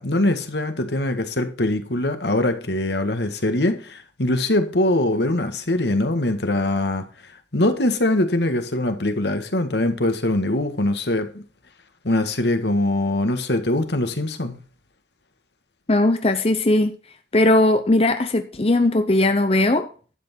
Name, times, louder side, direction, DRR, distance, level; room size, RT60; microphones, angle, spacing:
voice 1, 0.0-7.0 7.5-11.4 12.0-14.6, left 1 dB, 75° left, 1.8 m, -22 dB
voice 2, 15.9-16.9 17.3-19.9, left 2 dB, 35° left, 0.8 m, -18 dB
12.0 x 8.1 x 4.4 m
head